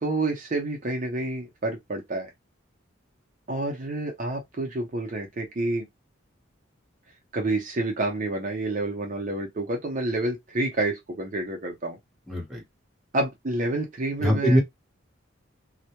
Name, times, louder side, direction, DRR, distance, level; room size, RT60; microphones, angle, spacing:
voice 1, 0.0-2.3 3.5-5.8 7.3-12.0 13.1-14.6, right 2 dB, 40° right, 0.5 m, -28 dB
voice 2, 12.3-12.6 14.2-14.6, equal, ahead, 0.8 m, -22 dB
2.1 x 2.0 x 2.8 m
head